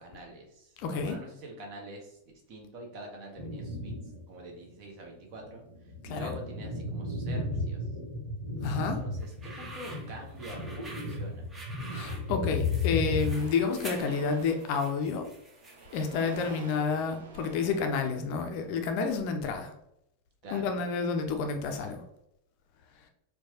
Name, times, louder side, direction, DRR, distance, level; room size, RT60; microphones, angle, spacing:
voice 1, 0.0-2.2 2.5-3.9 4.3-7.8 8.7-11.5 20.4-20.8, right 1 dB, 45° right, 1 dB, 1.0 m, -46 dB
voice 2, 0.8-1.2 6.1-6.3 8.6-9.0 11.9-15.3 15.9-19.7 20.5-22.0, left 5 dB, 45° left, 5 dB, 0.5 m, -30 dB
sound 1, 3.3-4.2 4.7-4.8 5.4-13.3, left 3 dB, 85° right, 1.0 m, -34 dB
sound 2, 9.2-16.8, right 2 dB, 15° right, 0.7 m, -47 dB
sound 3, 10.0-11.0 11.8-12.0 12.2-18.7, right 4 dB, 65° right, 0.6 m, -49 dB
4.4 x 2.3 x 2.8 m, 0.79 s
figure-of-eight pair, 90°, 0 cm